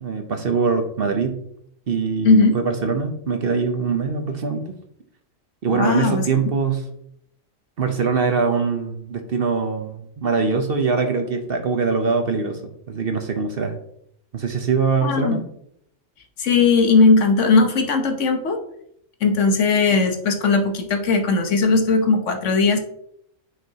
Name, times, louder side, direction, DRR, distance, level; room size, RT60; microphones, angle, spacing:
voice 1, 0.0-1.4 1.9-4.7 5.6-6.8 7.8-13.8 14.3-15.4, right 5 dB, 50° right, 6 dB, 0.9 m, -23 dB
voice 2, 2.2-2.6 5.7-6.2 15.0-15.4 16.4-18.6 19.2-22.8, left 4 dB, 65° left, 5 dB, 1.2 m, -18 dB
9.4 x 5.4 x 2.9 m, 0.73 s
omnidirectional pair, 1.4 m